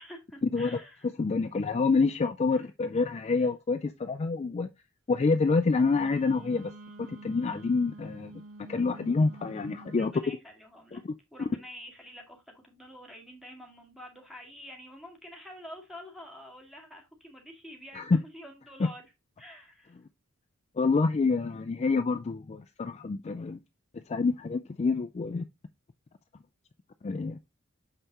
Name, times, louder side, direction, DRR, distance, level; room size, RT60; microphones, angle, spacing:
voice 1, 0.0-1.1 2.5-2.6 3.4-3.5 9.9-11.0 11.3-19.1 19.4-20.0, equal, ahead, 2.0 m, -48 dB
voice 2, 1.2-4.7 5.1-6.7 7.0-8.3 8.6-10.1 10.9-11.0 17.9-18.2 18.8-18.9 20.8-23.6 24.1-25.4 27.0-27.4, left 4 dB, 30° left, 0.4 m, -27 dB
Wind instrument woodwind instrument, 5.8-10.2, right 2 dB, 75° right, 0.8 m, -48 dB
6.6 x 5.5 x 2.9 m
head